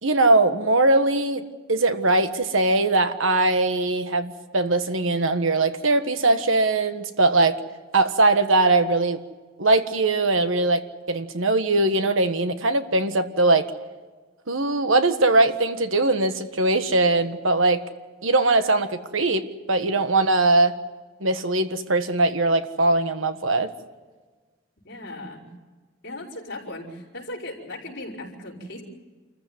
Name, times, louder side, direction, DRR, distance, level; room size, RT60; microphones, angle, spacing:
voice 1, 0.0-7.6 7.9-9.2 9.6-13.7 14.5-17.8 18.2-20.7 21.2-23.7, right 2 dB, 75° right, 9 dB, 1.5 m, -21 dB
voice 2, 24.8-25.4 26.0-28.8, left 1 dB, 55° left, -3 dB, 5.4 m, -37 dB
27.5 x 15.0 x 9.4 m, 1.4 s
head